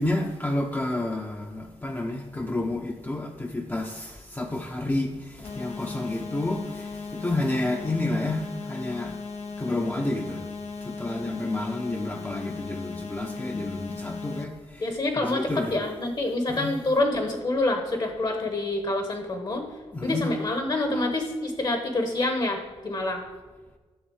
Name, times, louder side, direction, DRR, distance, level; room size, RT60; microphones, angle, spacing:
voice 1, 0.0-9.2 9.6-10.4 10.8-15.7 16.5-16.7 19.9-20.3, left 2 dB, 15° left, 0.7 m, -30 dB
sound 1, 5.4-14.4, left 4 dB, 85° left, 1.0 m, -37 dB
voice 2, 14.8-19.6 20.0-23.2, left 2 dB, 40° left, 1.1 m, -27 dB
10.5 x 4.0 x 7.2 m
wide cardioid pair, 105°, 11 cm